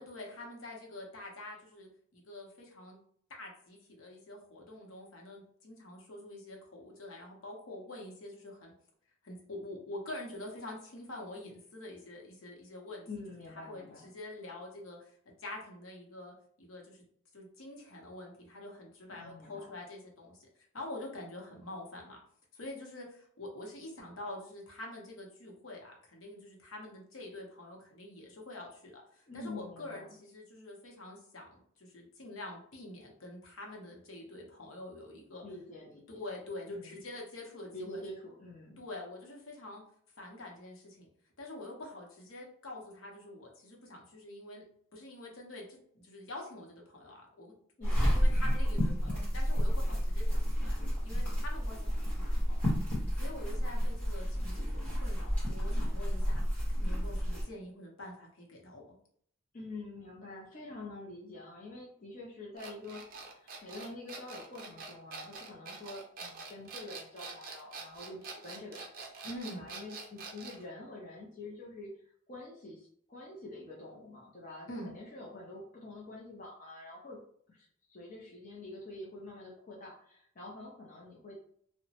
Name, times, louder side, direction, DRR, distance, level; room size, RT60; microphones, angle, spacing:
voice 1, 0.0-3.0 3.3-8.7 9.2-13.0 13.7-15.1 15.4-17.0 17.3-20.5 20.7-22.2 22.5-35.4 36.1-38.0 38.8-39.8 40.2-41.1 41.4-44.6 44.9-47.5 47.9-50.8 51.0-52.6 53.2-58.8 69.2-69.7 74.7-74.9, left 1 dB, 80° left, 0 dB, 0.8 m, -46 dB
voice 2, 13.1-14.1 19.1-19.8 29.3-30.1 35.4-36.2 36.7-37.0 37.7-38.8 47.8-48.3 59.5-69.3 69.5-71.9 72.3-77.2 77.5-81.3, left 2 dB, 40° left, -4 dB, 0.5 m, -47 dB
sound 1, 47.8-57.4, equal, 10° left, 1.3 m, -30 dB
sound 2, 62.6-70.6, right 4 dB, 45° right, 0.4 m, -45 dB
2.8 x 2.1 x 2.8 m, 0.62 s
head